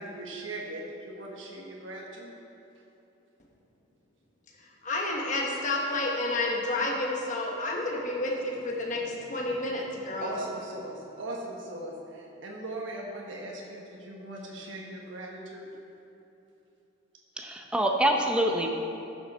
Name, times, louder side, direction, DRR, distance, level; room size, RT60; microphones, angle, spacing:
voice 1, 0.0-2.3 10.2-15.7, right 1 dB, 75° right, -2 dB, 1.2 m, -39 dB
voice 2, 4.8-10.3, left 2 dB, 40° left, -2 dB, 1.2 m, -30 dB
voice 3, 17.4-18.7, right 1 dB, 5° right, 1 dB, 0.7 m, -25 dB
13.0 x 7.0 x 4.2 m, 2.9 s
head